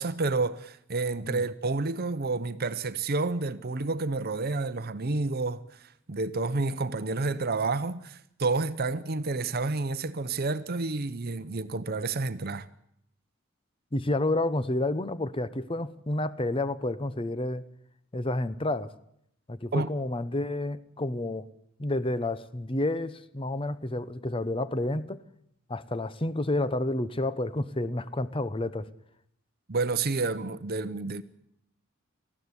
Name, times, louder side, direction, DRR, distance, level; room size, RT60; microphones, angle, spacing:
voice 1, 0.0-12.7 19.7-19.9 29.7-31.2, right 3 dB, 45° right, 0.8 m, -30 dB
voice 2, 13.9-17.6 18.1-18.9 19.5-21.5 21.8-25.2 25.7-28.9, left 2 dB, 25° left, 0.8 m, -30 dB
19.5 x 14.5 x 9.7 m
head